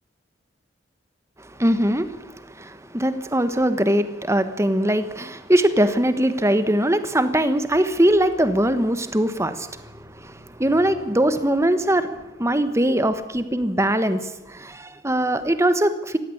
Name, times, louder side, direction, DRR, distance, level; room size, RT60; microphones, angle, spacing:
voice 1, 1.4-16.2, right 1 dB, 15° right, 11 dB, 1.2 m, -21 dB
17.5 x 15.5 x 9.9 m, 1.1 s
head